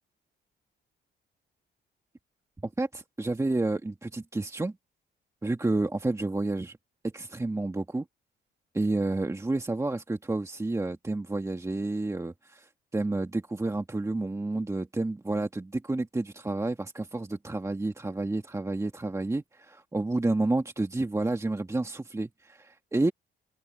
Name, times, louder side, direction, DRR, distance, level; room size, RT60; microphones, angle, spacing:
voice 1, 2.8-4.8 5.4-6.8 7.0-8.1 8.7-23.1, right 2 dB, 15° right, 1.8 m, -30 dB
open air
cardioid pair, 90°, 20 cm